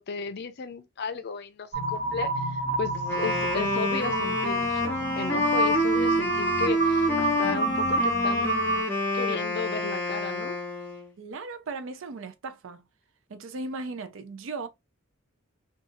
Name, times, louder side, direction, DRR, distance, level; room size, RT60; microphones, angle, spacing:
voice 1, 0.0-4.8 5.2-8.6 9.1-10.5, left 5 dB, 55° left, 0.4 m, -34 dB
sound 1, 1.7-8.8, right 3 dB, 35° right, 1.4 m, -29 dB
Wind instrument woodwind instrument, 2.9-11.1, left 1 dB, 10° left, 0.7 m, -28 dB
voice 2, 11.2-12.8 13.3-14.7, right 3 dB, 65° right, 0.4 m, -37 dB
2.6 x 2.3 x 2.5 m
head